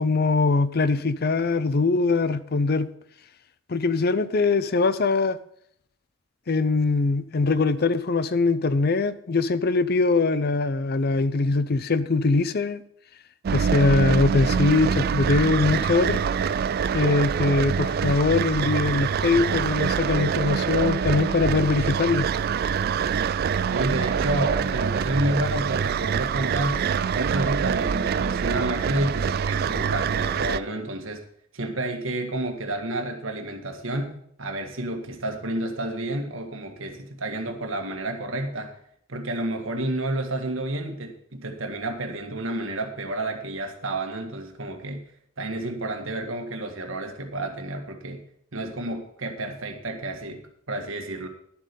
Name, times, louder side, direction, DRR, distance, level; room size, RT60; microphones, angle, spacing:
voice 1, 0.0-2.9 3.7-5.4 6.5-12.8 13.5-16.2 16.9-22.3, left 3 dB, 50° left, 14 dB, 0.6 m, -22 dB
sound 1, 13.4-30.6, right 7 dB, 50° right, 0.3 m, -25 dB
voice 2, 23.7-26.8 27.1-31.2 31.5-34.1 34.4-38.7 39.1-45.0 45.4-48.2 48.5-50.4 50.7-51.3, right 1 dB, 70° right, 4 dB, 1.7 m, -30 dB
11.5 x 7.5 x 5.3 m, 0.67 s
head